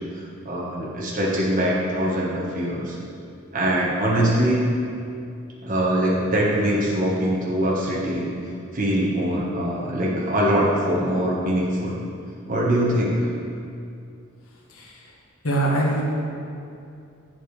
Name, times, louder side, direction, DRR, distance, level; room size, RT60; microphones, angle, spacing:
voice 1, 0.1-3.0 3.5-4.6 5.6-8.3 8.7-12.0 12.5-13.3, equal, 40° right, -5 dB, 1.2 m, -23 dB
voice 2, 15.4-16.0, right 1 dB, 80° left, -2 dB, 1.4 m, -22 dB
8.8 x 7.6 x 3.3 m, 2.5 s
head